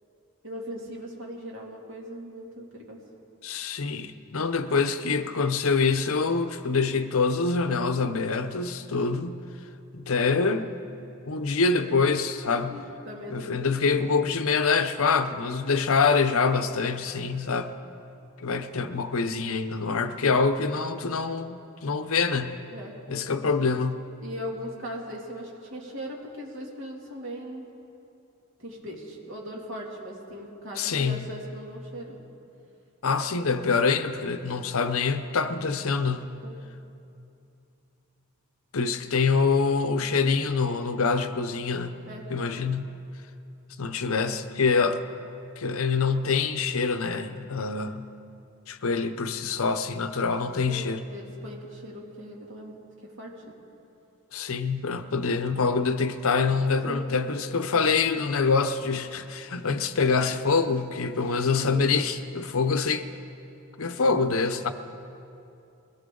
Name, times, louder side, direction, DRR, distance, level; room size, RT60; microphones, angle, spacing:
voice 1, 0.4-3.0 12.7-13.5 22.7-23.0 24.2-27.7 28.6-32.2 36.4-36.5 42.1-42.3 50.6-50.8 51.1-53.5 56.9-57.0 61.6-61.8, equal, 55° right, -2 dB, 2.7 m, -39 dB
voice 2, 3.4-9.4 9.9-10.7 11.3-12.8 13.3-17.7 18.4-22.6 23.1-24.0 30.8-31.3 33.0-36.3 38.7-41.9 42.3-42.9 43.8-45.0 45.6-48.1 48.7-51.0 54.3-63.0 63.8-64.7, left 4 dB, 65° left, 10 dB, 0.7 m, -25 dB
22.0 x 17.0 x 3.8 m, 2.7 s
head